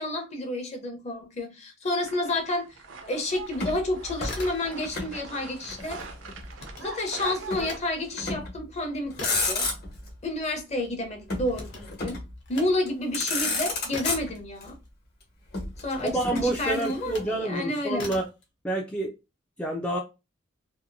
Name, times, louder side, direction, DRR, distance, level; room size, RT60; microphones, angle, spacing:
voice 1, 0.0-2.8 3.1-6.0 6.8-9.7 10.2-12.2 12.5-14.8 15.8-18.1, left 1 dB, 35° left, 0.7 m, -30 dB
sound 1, 2.0-7.8, right 4 dB, 85° right, 0.6 m, -42 dB
Motor vehicle (road), 3.5-5.2 5.4-6.5 7.5-7.7 8.2-8.6 9.0-10.1 11.3-12.3 12.9-13.0 13.1-14.6 15.5-17.2, left 3 dB, 50° left, 1.1 m, -31 dB
sound 2, 4.2-5.1 5.4-7.8 8.2-15.3 15.9-17.4 17.9-18.4, left 2 dB, 70° left, 0.8 m, -43 dB
voice 2, 16.1-18.3 18.6-19.1 19.6-20.0, right 1 dB, 5° left, 0.3 m, -28 dB
2.8 x 2.5 x 2.6 m
head